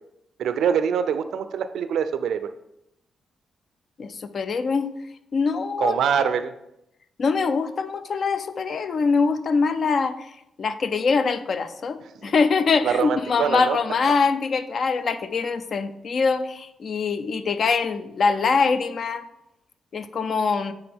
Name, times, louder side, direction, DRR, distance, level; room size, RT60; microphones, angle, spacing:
voice 1, 0.4-2.5 5.8-6.5 12.8-13.8, right 7 dB, 80° right, 11 dB, 0.4 m, -24 dB
voice 2, 4.0-4.9 5.3-6.3 7.2-10.3 10.6-19.2 19.9-20.7, left 4 dB, 50° left, 11 dB, 0.4 m, -23 dB
8.9 x 3.5 x 3.5 m, 0.84 s
cardioid pair, 115°, 0 cm